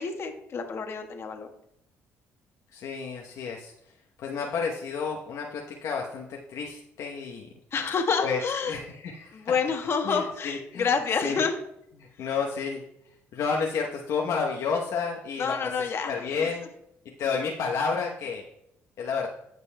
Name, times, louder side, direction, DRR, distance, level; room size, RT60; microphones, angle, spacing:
voice 1, 0.0-1.5 7.7-8.8 9.3-11.6 12.2-12.3 15.4-16.5, left 5 dB, 50° left, 4 dB, 1.3 m, -28 dB
voice 2, 2.7-3.7 4.2-7.5 8.2-8.4 8.7-9.4 10.0-10.9 11.2-11.5 12.0-12.8 13.3-15.7 16.1-16.7 17.2-18.4 19.0-19.3, left 5 dB, 75° left, -1 dB, 0.9 m, -30 dB
14.5 x 5.3 x 2.2 m, 0.78 s
cardioid pair, 80°, 5 cm